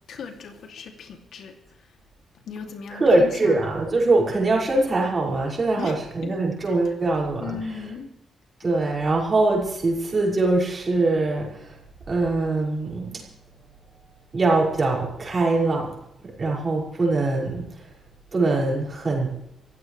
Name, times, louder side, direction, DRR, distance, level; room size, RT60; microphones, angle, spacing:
voice 1, 0.1-1.5 2.5-3.5 5.7-6.4 6.7-6.9 7.4-8.1, left 6 dB, 65° left, 4 dB, 2.8 m, -37 dB
voice 2, 2.9-7.6 8.6-11.7 12.1-13.2 14.3-15.9 16.2-17.7 18.3-19.4, right 2 dB, 25° right, -3 dB, 6.2 m, -22 dB
26.0 x 16.0 x 3.4 m, 0.83 s
wide cardioid pair, 155°, 0 cm